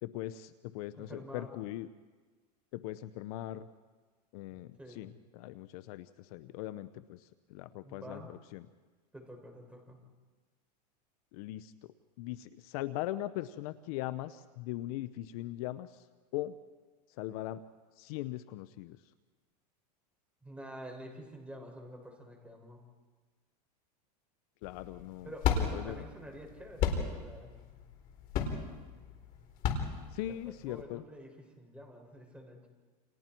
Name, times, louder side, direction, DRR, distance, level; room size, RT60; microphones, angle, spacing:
voice 1, 0.0-1.9 2.7-3.7 4.3-8.7 11.3-11.9 12.2-16.0 16.3-16.5 17.2-17.6 18.0-19.0 24.6-25.3 25.6-26.0 30.1-31.0, left 15 dB, 60° left, 13 dB, 1.0 m, -40 dB
voice 2, 1.0-1.5 4.8-5.1 7.8-8.3 9.1-10.0 20.4-22.8 25.2-27.5 30.3-30.4 30.7-32.7, equal, 5° right, 1 dB, 6.4 m, -48 dB
sound 1, 24.6-30.8, left 7 dB, 40° left, 4.3 m, -33 dB
30.0 x 29.0 x 4.6 m, 1.3 s
supercardioid pair, 125°, 21 cm